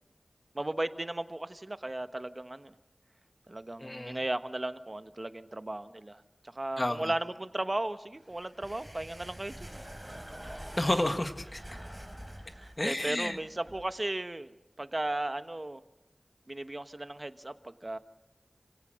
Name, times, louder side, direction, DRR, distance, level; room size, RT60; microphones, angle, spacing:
voice 1, 0.5-2.7 3.5-6.2 6.5-9.8 12.6-14.5 14.8-15.8 16.5-18.0, right 1 dB, 40° right, 10 dB, 1.2 m, -36 dB
voice 2, 3.8-4.2 6.8-7.1 10.8-11.8 12.8-13.4, left 1 dB, 40° left, 8 dB, 1.7 m, -31 dB
sound 1, 8.2-13.8, equal, 15° right, 4.7 m, -46 dB
28.5 x 17.5 x 6.4 m, 0.94 s
wide cardioid pair, 45°, 0 cm